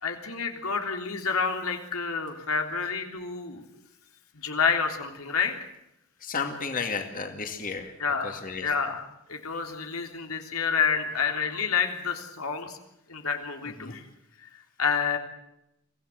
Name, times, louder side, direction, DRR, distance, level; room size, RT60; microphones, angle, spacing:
voice 1, 0.0-3.6 4.3-5.7 8.0-9.0 9.3-12.8 13.1-14.1 14.4-15.2, left 5 dB, 90° left, 4 dB, 3.5 m, -29 dB
voice 2, 6.2-7.9 8.2-8.7 13.8-14.0, left 5 dB, 40° left, 4 dB, 2.4 m, -33 dB
25.0 x 16.5 x 7.8 m, 0.82 s
head